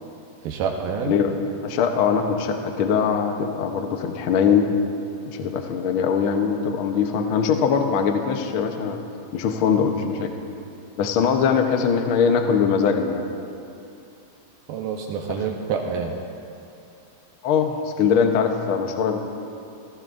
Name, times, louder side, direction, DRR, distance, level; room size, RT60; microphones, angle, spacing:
voice 1, 0.4-1.2 14.7-16.1, right 6 dB, 85° right, 1 dB, 2.5 m, -27 dB
voice 2, 1.6-4.7 5.3-9.0 9.3-10.3 11.0-13.3 17.4-19.2, left 6 dB, 85° left, 4 dB, 1.1 m, -21 dB
27.5 x 15.5 x 2.6 m, 2.6 s
omnidirectional pair, 3.8 m